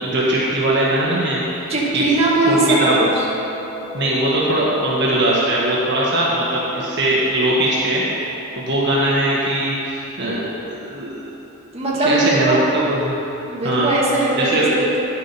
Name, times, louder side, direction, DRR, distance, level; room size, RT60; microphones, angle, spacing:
voice 1, 0.0-1.4 1.9-2.0 2.5-3.0 3.9-8.0 8.6-11.3 12.0-13.2 13.6-13.9 14.4-14.7, right 1 dB, 50° right, -6 dB, 1.5 m, -20 dB
voice 2, 1.7-3.3 11.7-12.6 13.5-15.0, right 2 dB, 30° right, -6 dB, 1.8 m, -19 dB
sound 1, 2.2-10.8, equal, 5° left, 1.5 m, -37 dB
10.0 x 7.5 x 5.5 m, 3.0 s
head